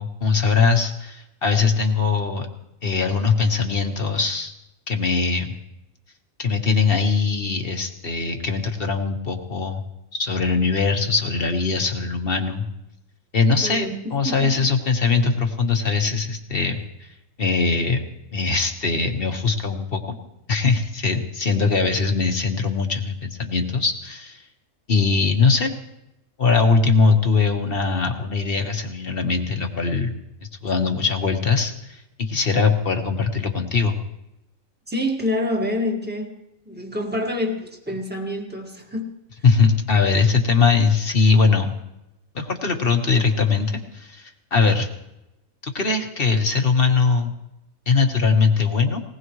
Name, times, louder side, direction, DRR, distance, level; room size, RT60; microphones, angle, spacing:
voice 1, 0.0-2.5 2.8-4.5 4.9-5.5 6.4-9.8 10.1-12.6 13.3-17.1 17.4-18.0 18.3-20.2 20.5-24.4 24.9-25.7 26.4-30.1 30.6-34.0 39.4-41.7 42.3-44.9 45.6-47.3 47.9-49.0, left 4 dB, 40° left, 5 dB, 1.6 m, -21 dB
voice 2, 13.6-14.0 14.2-14.7 34.9-36.4 36.7-39.2, left 1 dB, 5° right, 1 dB, 1.8 m, -27 dB
19.5 x 19.5 x 3.2 m, 0.90 s
omnidirectional pair, 1.5 m